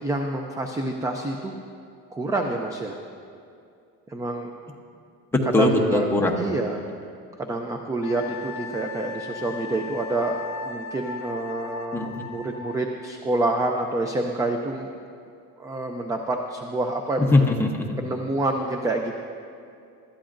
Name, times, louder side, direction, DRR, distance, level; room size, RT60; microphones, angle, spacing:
voice 1, 0.0-1.6 2.1-3.0 4.1-4.5 5.6-6.1 6.4-6.8 7.4-14.9 15.6-17.5 18.0-19.1, right 2 dB, 10° right, 3 dB, 0.4 m, -27 dB
voice 2, 5.3-6.4 11.9-12.2 17.3-18.0, left 2 dB, 10° left, 0 dB, 0.9 m, -21 dB
Wind instrument woodwind instrument, 8.0-12.9, left 5 dB, 45° left, 1.6 m, -37 dB
20.0 x 13.0 x 2.6 m, 2.5 s
cardioid pair, 170°, 30 cm